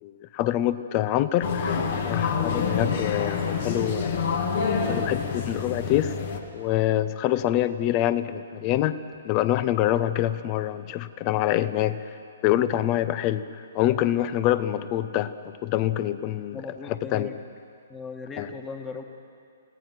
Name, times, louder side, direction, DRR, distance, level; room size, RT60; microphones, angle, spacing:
voice 1, 0.0-4.3 4.9-6.1 6.5-9.0 9.2-12.0 12.4-13.5 13.7-15.3 15.6-16.6 16.9-17.3 18.4-18.5, left 13 dB, 30° left, 14 dB, 0.9 m, -25 dB
sound 1, 1.4-6.4, left 5 dB, 55° left, 2.3 m, -27 dB
voice 2, 16.5-17.4 17.9-19.0, left 4 dB, 15° left, 4 dB, 2.0 m, -38 dB
29.5 x 17.5 x 6.1 m, 2.4 s
figure-of-eight pair, 120°, 0 cm